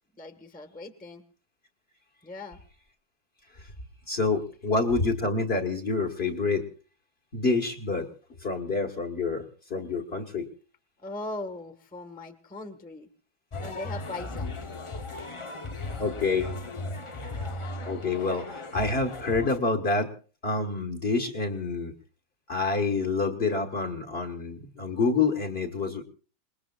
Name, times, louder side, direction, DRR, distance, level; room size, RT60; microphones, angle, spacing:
voice 1, 0.1-1.2 2.2-2.6 11.0-13.1 13.6-14.5, left 2 dB, 5° left, 7 dB, 1.3 m, -39 dB
voice 2, 4.1-6.6 7.3-8.1 8.4-9.4 9.7-10.5 16.0-16.5 17.8-20.1 20.4-21.9 22.5-26.0, left 3 dB, 35° left, 3 dB, 1.7 m, -27 dB
sound 1, 13.5-19.6, left 2 dB, 50° left, 0.3 m, -36 dB
28.0 x 20.5 x 2.4 m, 0.38 s
omnidirectional pair, 2.1 m